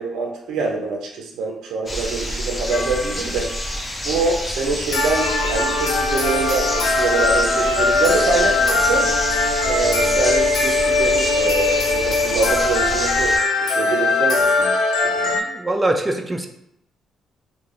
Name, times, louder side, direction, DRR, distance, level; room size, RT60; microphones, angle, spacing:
voice 1, 0.0-3.5 4.0-9.1 9.6-13.4 13.7-15.4, right 3 dB, 80° right, 0 dB, 0.4 m, -25 dB
sound 1, 1.9-13.4, equal, 30° left, 0.7 m, -28 dB
sound 2, 2.7-3.3 4.9-15.4, left 3 dB, 85° left, 0.4 m, -20 dB
voice 2, 15.3-16.5, right 1 dB, 15° right, 4 dB, 0.3 m, -23 dB
2.4 x 2.1 x 3.1 m, 0.76 s
cardioid pair, 90°, 0 cm